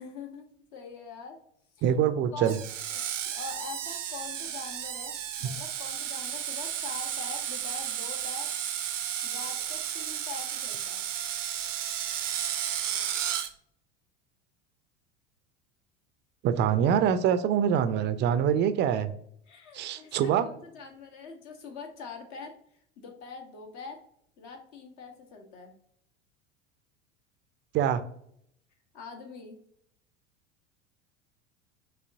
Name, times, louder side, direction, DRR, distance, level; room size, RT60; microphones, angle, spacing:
voice 1, 0.0-1.4 1.8-1.9 2.3-2.6 2.9-8.5 9.2-11.0 19.5-22.5 23.0-24.0 24.4-25.7 28.9-29.6, left 4 dB, 50° left, 3 dB, 1.2 m, -43 dB
voice 2, 1.8-2.6 16.4-19.1 19.7-20.5 27.7-28.0, right 9 dB, 30° right, 11 dB, 0.4 m, -24 dB
Screech, 2.4-13.5, right 9 dB, 85° right, 0.6 m, -33 dB
5.4 x 3.2 x 2.6 m, 0.67 s
figure-of-eight pair, 80°, 36 cm